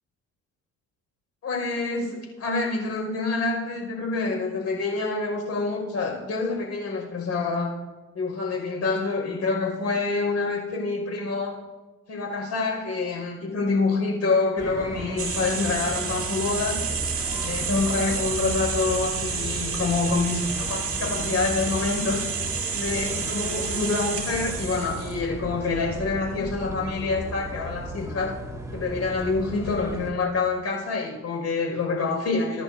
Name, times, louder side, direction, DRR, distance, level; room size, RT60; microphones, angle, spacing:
voice 1, 1.4-7.7 8.1-11.5 12.1-16.8 17.3-22.2 22.7-28.3 28.7-32.6, left 3 dB, 60° left, 1 dB, 5.4 m, -27 dB
sound 1, 14.6-30.1, right 1 dB, 10° right, 2.0 m, -35 dB
sound 2, 15.2-25.2, right 6 dB, 45° right, 2.4 m, -30 dB
24.5 x 10.5 x 2.7 m, 1.2 s
cardioid pair, 90°, 30 cm